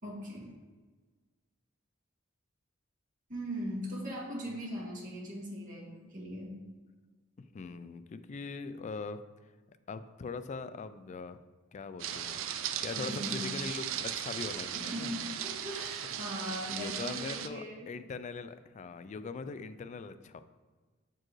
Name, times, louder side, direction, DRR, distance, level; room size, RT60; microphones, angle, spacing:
voice 1, 0.0-0.5 3.3-6.6 12.9-13.4 14.7-17.9, equal, 45° right, -4 dB, 1.9 m, -40 dB
voice 2, 7.4-9.2 9.7-11.4 11.7-15.1 16.7-20.4, left 4 dB, 35° left, 12 dB, 0.3 m, -41 dB
sound 1, 12.0-17.5, right 10 dB, 75° right, 0.4 m, -37 dB
7.3 x 4.5 x 3.1 m, 1.4 s
head